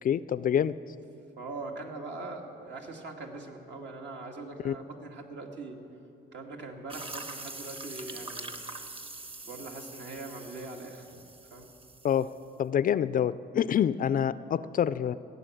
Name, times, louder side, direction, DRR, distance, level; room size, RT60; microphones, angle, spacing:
voice 1, 0.0-0.8 4.6-4.8 12.0-12.3 12.6-15.1, left 9 dB, 45° left, 16 dB, 0.4 m, -26 dB
voice 2, 1.4-5.8 6.3-8.6 9.4-11.2 11.5-11.7, right 3 dB, 65° right, 1 dB, 2.0 m, -41 dB
sound 1, 6.9-12.5, right 3 dB, 30° right, 1.1 m, -43 dB
16.5 x 7.0 x 9.1 m, 2.9 s
cardioid pair, 90°, 20 cm